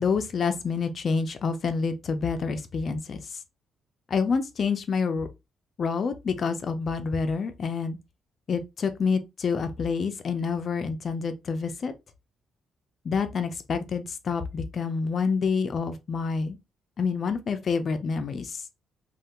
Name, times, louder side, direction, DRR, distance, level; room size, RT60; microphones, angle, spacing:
voice 1, 0.0-3.4 4.1-5.3 5.8-8.0 8.5-11.9 13.0-16.6 17.0-18.6, left 5 dB, 50° left, 0.5 m, -28 dB
3.3 x 2.3 x 2.9 m
cardioid pair, 90°, 0 cm